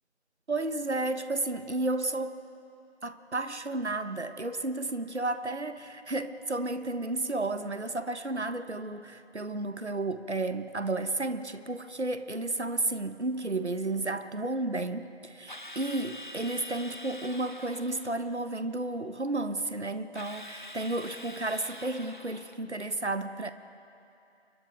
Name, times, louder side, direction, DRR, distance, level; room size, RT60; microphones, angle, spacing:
voice 1, 0.5-2.4 3.0-23.5, right 2 dB, 80° right, 10 dB, 1.1 m, -32 dB
Drill, 15.5-18.2 20.1-22.6, left 1 dB, 45° left, 1.0 m, -45 dB
29.5 x 23.0 x 3.9 m, 2.7 s
figure-of-eight pair, 175°, 33 cm